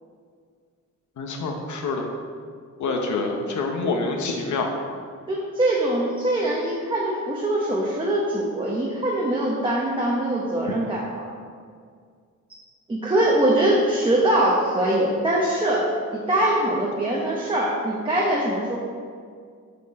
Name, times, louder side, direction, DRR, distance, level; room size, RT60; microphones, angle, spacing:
voice 1, 1.2-2.0 2.8-4.7, left 3 dB, 80° left, 2 dB, 0.9 m, -26 dB
voice 2, 5.3-11.2 12.9-15.8 16.1-18.8, right 1 dB, 15° right, -5 dB, 1.0 m, -22 dB
12.5 x 4.5 x 4.2 m, 2.1 s
wide cardioid pair, 170°, 29 cm